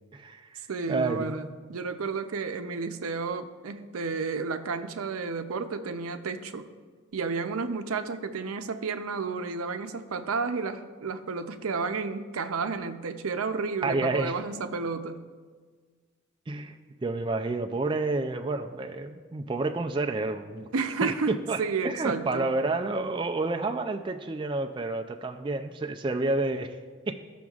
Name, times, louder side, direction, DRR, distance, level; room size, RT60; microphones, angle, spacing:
voice 1, 0.1-1.5 13.8-14.4 16.5-16.8 17.0-20.7 21.0-21.6 21.8-26.8 27.1-27.2, right 3 dB, 25° right, 5 dB, 0.3 m, -29 dB
voice 2, 0.7-6.7 7.1-15.2 20.7-22.5, right 4 dB, 85° right, 8 dB, 0.6 m, -31 dB
15.0 x 6.1 x 2.4 m, 1.5 s
head